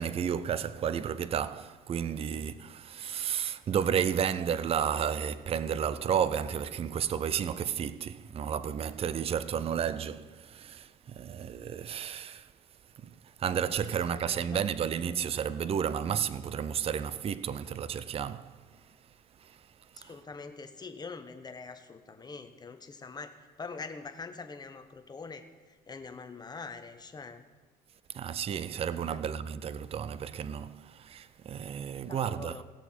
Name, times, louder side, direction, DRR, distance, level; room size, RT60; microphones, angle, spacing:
voice 1, 0.0-12.5 13.0-18.6 19.4-19.6 20.0-20.1 28.1-32.6, right 8 dB, 35° right, 0.4 m, -32 dB
voice 2, 13.9-14.6 19.9-27.4 29.1-29.2 32.1-32.6, left 4 dB, 25° left, 1.0 m, -44 dB
18.0 x 6.9 x 4.3 m
cardioid pair, 110°, 17 cm